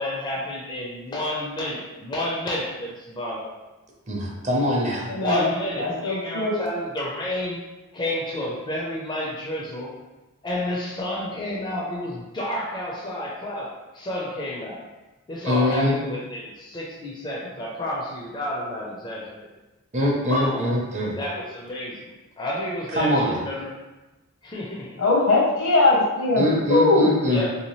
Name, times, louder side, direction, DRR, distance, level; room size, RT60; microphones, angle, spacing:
voice 1, 0.0-3.5 5.1-7.6 7.9-9.9 10.4-13.7 13.9-14.8 15.3-19.5 20.3-20.7 21.2-22.1 22.4-23.7 24.4-25.0 27.3-27.6, left 1 dB, 20° left, -4 dB, 0.4 m, -30 dB
voice 2, 4.1-5.1 15.4-16.0 19.9-21.2 23.0-23.4 26.4-27.4, left 1 dB, 30° right, -2 dB, 0.6 m, -23 dB
voice 3, 5.1-5.4 5.8-6.5 25.0-26.4 26.7-27.1, left 2 dB, 75° left, -2 dB, 0.8 m, -20 dB
3.4 x 2.7 x 3.0 m, 1.1 s
head